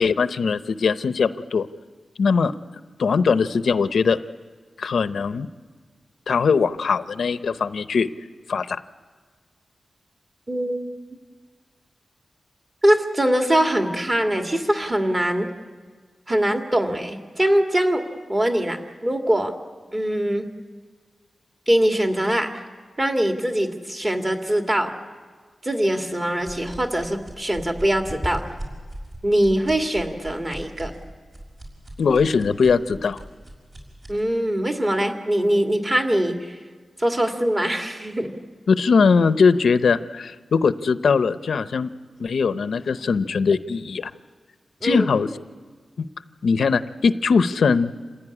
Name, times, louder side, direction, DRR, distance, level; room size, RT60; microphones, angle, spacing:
voice 1, 0.0-1.7 2.2-2.5 3.0-4.2 4.8-5.5 6.3-8.1 8.5-8.8 32.0-33.2 38.7-41.9 42.2-44.1 44.8-45.3 46.4-47.9, left 5 dB, 80° left, 12 dB, 0.7 m, -20 dB
voice 2, 10.5-10.9 12.8-15.5 16.3-18.0 18.3-19.5 19.9-20.5 21.7-22.5 23.0-24.9 25.6-28.4 29.2-30.9 34.1-36.6 37.0-38.3 44.8-45.1, right 1 dB, 25° right, 4 dB, 2.2 m, -22 dB
sound 1, 26.4-34.2, right 1 dB, 45° right, 5.9 m, -39 dB
27.5 x 16.0 x 9.9 m, 1.5 s
wide cardioid pair, 120°, 0 cm